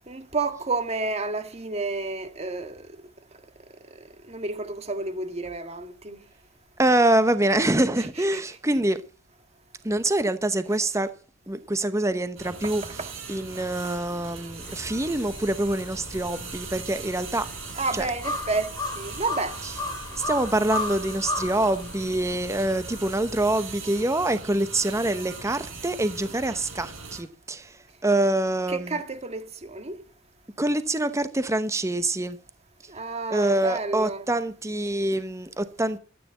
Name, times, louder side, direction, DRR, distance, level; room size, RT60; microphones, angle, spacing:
voice 1, 0.1-2.8 4.3-6.2 12.6-12.7 13.0-13.1 17.8-19.6 28.7-30.0 32.9-34.2, right 3 dB, 30° right, 1.8 m, -30 dB
voice 2, 6.8-9.0 9.8-11.1 11.5-12.8 13.3-17.5 17.9-18.1 20.2-27.8 28.0-29.0 30.6-32.4 33.3-36.0, right 1 dB, 15° right, 0.9 m, -25 dB
sound 1, 12.4-27.2, right 4 dB, 85° right, 5.2 m, -40 dB
sound 2, 14.6-23.5, left 2 dB, 20° left, 2.2 m, -36 dB
13.5 x 9.6 x 7.2 m
head